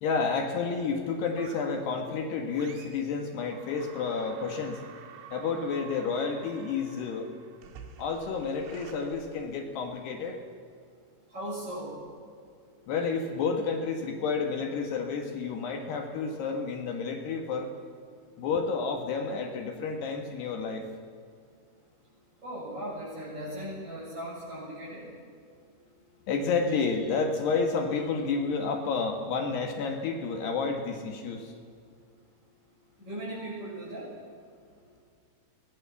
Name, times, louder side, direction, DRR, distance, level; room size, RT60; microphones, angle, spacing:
voice 1, 0.0-4.8 5.3-7.3 8.0-10.4 12.9-17.7 18.4-20.9 26.3-31.4, left 5 dB, 65° left, 3 dB, 3.5 m, -30 dB
sound 1, 1.4-1.9 2.5-3.2 3.5-9.9, right 7 dB, 90° right, 4.4 m, -49 dB
voice 2, 11.3-11.9 22.4-25.1 33.0-34.1, right 1 dB, 20° right, -9 dB, 7.5 m, -38 dB
23.0 x 19.5 x 7.2 m, 2.2 s
omnidirectional pair, 5.6 m